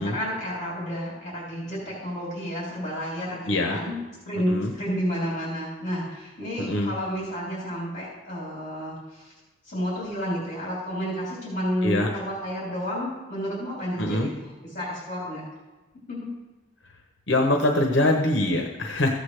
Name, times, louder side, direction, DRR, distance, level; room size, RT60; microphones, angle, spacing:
voice 1, 0.0-4.0 4.2-9.3 9.7-15.4 16.1-16.3, equal, 35° left, -6 dB, 3.2 m, -31 dB
voice 2, 3.5-3.8 4.5-4.7 6.7-6.9 11.8-12.1 14.0-14.3 17.3-19.1, left 1 dB, 65° left, 2 dB, 1.0 m, -23 dB
14.5 x 8.1 x 3.3 m, 1.1 s
head